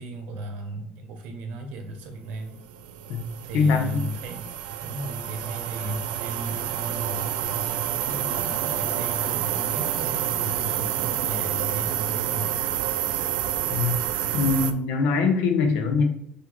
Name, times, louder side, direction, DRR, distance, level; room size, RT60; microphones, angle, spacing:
voice 1, 0.0-2.6 3.4-4.5 4.8-12.7, right 1 dB, 65° right, 5 dB, 0.9 m, -36 dB
sound 1, 2.5-14.7, right 11 dB, 85° right, 0.4 m, -28 dB
voice 2, 3.5-4.0 13.7-14.0 14.3-16.0, left 4 dB, 75° left, 5 dB, 0.8 m, -22 dB
5.8 x 2.7 x 3.0 m, 0.75 s
cardioid pair, 175°, 3 cm